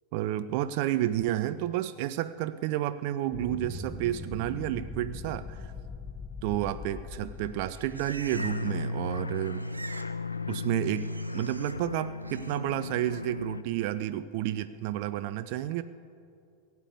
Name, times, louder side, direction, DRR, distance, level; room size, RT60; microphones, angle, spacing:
voice 1, 0.1-5.7 6.4-9.6 10.5-15.8, right 13 dB, 45° right, 13 dB, 0.4 m, -31 dB
sound 1, 3.3-9.1, left 3 dB, 15° left, 1.1 m, -41 dB
Livestock farm animals working animals, 7.4-8.8 9.1-10.1 10.4-11.7 12.2-12.6, right 3 dB, 80° right, 0.7 m, -45 dB
sound 2, 8.3-13.6, left 3 dB, 80° left, 0.4 m, -35 dB
16.5 x 8.2 x 8.4 m, 2.6 s
figure-of-eight pair, 90°, 0 cm